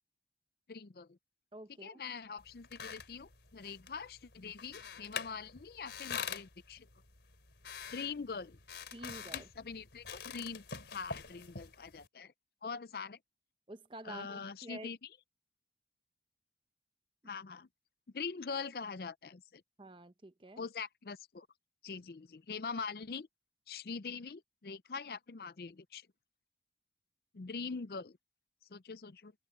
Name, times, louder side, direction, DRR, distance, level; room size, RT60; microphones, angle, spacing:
voice 1, 0.7-1.2 1.8-6.9 7.9-8.6 9.3-12.3 12.6-13.2 14.0-15.0 17.3-17.7 18.1-19.6 20.6-21.5 21.8-23.3 23.7-26.1 27.3-28.2 28.7-29.3, left 5 dB, 55° left, 0.5 m, -43 dB
voice 2, 1.5-2.0 8.9-9.5 13.7-14.9 19.8-20.6, right 1 dB, 30° right, 0.8 m, -49 dB
sound 1, 2.4-12.1, left 6 dB, 80° left, 3.4 m, -46 dB
open air
head